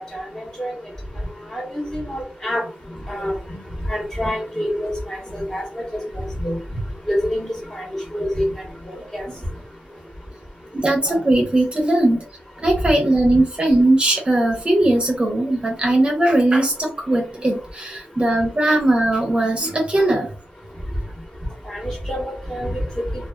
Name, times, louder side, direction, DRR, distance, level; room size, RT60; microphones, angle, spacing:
voice 1, 0.1-0.7 1.5-2.6 3.1-3.3 3.9-5.6 6.4-6.6 7.1-7.8 8.1-8.5 8.9-9.2 21.7-21.8 22.1-22.8, equal, 15° left, -2 dB, 1.1 m, -26 dB
voice 2, 10.7-12.3 12.6-20.3 21.8-21.9, right 1 dB, 30° right, -1 dB, 0.8 m, -19 dB
2.4 x 2.4 x 2.2 m, 0.37 s
wide cardioid pair, 90°, 4 cm